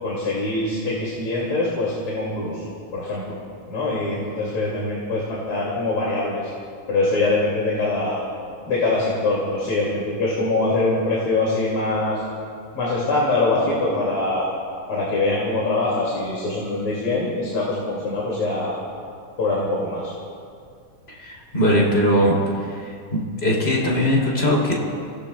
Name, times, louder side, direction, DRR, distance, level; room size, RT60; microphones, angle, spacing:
voice 1, 0.0-2.6 2.9-3.4 3.7-6.5 6.9-8.2 8.7-12.2 12.7-14.5 14.9-18.8 19.4-20.1, left 2 dB, 85° left, -5 dB, 3.4 m, -23 dB
voice 2, 21.1-22.4 23.1-24.7, equal, 25° left, -3 dB, 3.4 m, -20 dB
29.0 x 18.0 x 2.3 m, 2.3 s
omnidirectional pair, 2.3 m